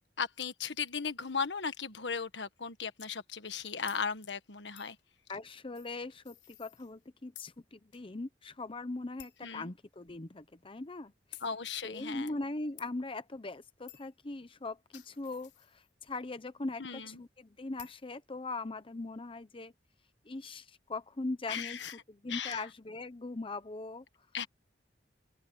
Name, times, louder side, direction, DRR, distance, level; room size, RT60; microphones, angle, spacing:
voice 1, 0.2-5.0 9.4-9.7 11.4-12.4 16.8-17.2 21.5-21.9 22.3-22.6 24.3-24.5, left 6 dB, 85° left, 1.4 m, -37 dB
sound 1, 3.9-4.0 4.8-5.0 5.7-7.1 7.3-7.6 7.9-8.0 8.4-8.5 9.2-9.5 10.1-10.2 11.3-11.5 12.8-12.9 13.9-14.2 14.7-16.1 17.8-18.0, left 13 dB, 70° left, 4.2 m, -53 dB
voice 2, 5.3-11.1 11.8-19.7 20.2-21.8 22.1-24.0, left 2 dB, 30° left, 0.8 m, -40 dB
open air
head